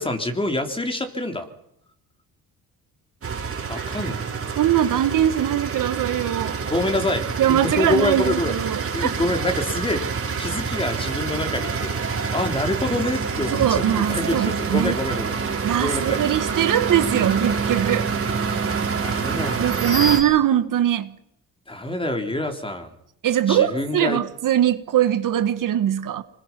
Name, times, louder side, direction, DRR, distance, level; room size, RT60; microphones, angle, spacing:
voice 1, 0.0-1.5 3.7-4.2 6.6-8.5 8.9-10.0 10.4-13.8 14.1-15.3 15.8-16.2 19.0-19.6 21.7-22.9 23.5-24.2, left 1 dB, 15° left, 3.5 m, -26 dB
sound 1, 3.2-20.2, right 5 dB, 40° right, 4.6 m, -27 dB
voice 2, 4.6-6.6 7.4-9.1 13.5-14.9 15.6-18.1 19.6-21.1 23.2-26.2, right 11 dB, 65° right, 1.4 m, -21 dB
25.5 x 21.0 x 6.0 m
cardioid pair, 95°, 35 cm